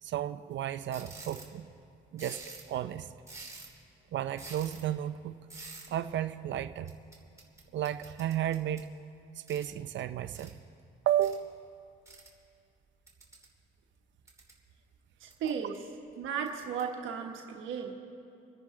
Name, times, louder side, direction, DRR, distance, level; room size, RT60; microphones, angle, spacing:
voice 1, 0.0-1.7 2.1-2.4 2.7-3.1 4.1-5.4 5.9-6.9 7.7-8.9 9.4-10.6 11.1-11.5 15.5-15.6, right 11 dB, 65° right, 12 dB, 0.6 m, -33 dB
sound 1, 0.9-1.5 2.2-2.7 3.2-3.8 4.4-4.8 5.5-5.9 6.9-8.9 9.5-9.7 10.4-10.5 11.2-11.4 12.1-12.3 13.1-13.5 14.0-14.6 15.3-15.8 16.5-16.8, right 3 dB, 15° right, 3.0 m, -48 dB
voice 2, 15.2-15.7 16.2-17.9, right 7 dB, 85° right, 2 dB, 1.3 m, -35 dB
28.0 x 9.9 x 3.8 m, 2.5 s
cardioid pair, 90°, 20 cm